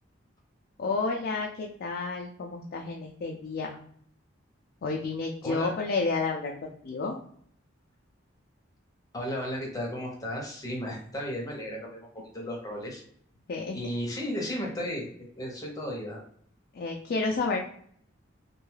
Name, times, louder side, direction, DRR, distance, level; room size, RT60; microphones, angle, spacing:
voice 1, 0.8-3.7 4.8-7.2 13.5-13.8 16.7-17.6, left 3 dB, 50° left, 1 dB, 0.3 m, -30 dB
voice 2, 9.1-12.1 12.3-13.0 13.7-15.1 15.4-16.2, equal, 20° left, -2 dB, 0.7 m, -34 dB
2.6 x 2.3 x 3.1 m, 0.62 s
head